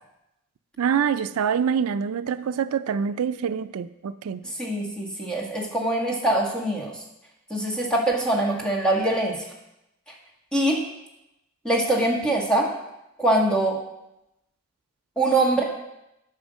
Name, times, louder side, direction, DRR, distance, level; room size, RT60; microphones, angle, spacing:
voice 1, 0.8-4.4, right 7 dB, 90° right, 13 dB, 0.4 m, -25 dB
voice 2, 4.6-6.9 7.5-9.4 10.5-10.8 11.6-12.7 13.2-13.8 15.2-15.6, right 1 dB, 5° left, -2 dB, 1.8 m, -23 dB
9.6 x 5.6 x 6.4 m, 0.88 s
head